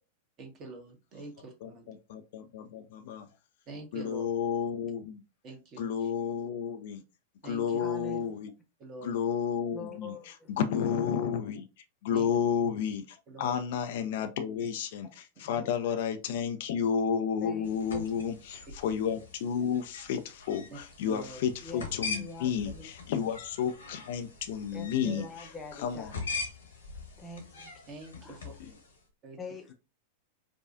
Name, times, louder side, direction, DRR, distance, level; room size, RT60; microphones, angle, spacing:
voice 1, 0.4-1.9 3.7-4.2 5.4-6.1 7.4-7.8 8.8-9.1 12.1-12.3 13.3-13.6 15.6-15.7 20.7-20.8 21.1-21.4 22.6-22.7 25.0-25.2 27.9-28.5 29.2-29.4, right 3 dB, 35° right, 1.1 m, -45 dB
voice 2, 1.6-3.3 3.9-5.2 5.8-7.0 7.4-8.5 9.0-26.1 28.6-28.7, left 7 dB, 55° left, 0.4 m, -32 dB
voice 3, 7.8-8.3 9.7-10.5 15.4-15.6 17.4-18.0 21.6-22.9 24.7-26.2 27.2-27.7 28.2-28.4 29.4-29.7, left 3 dB, 20° left, 0.9 m, -44 dB
sound 1, 17.6-29.0, left 4 dB, 70° left, 1.1 m, -42 dB
4.9 x 2.3 x 2.5 m
figure-of-eight pair, 90°, 0 cm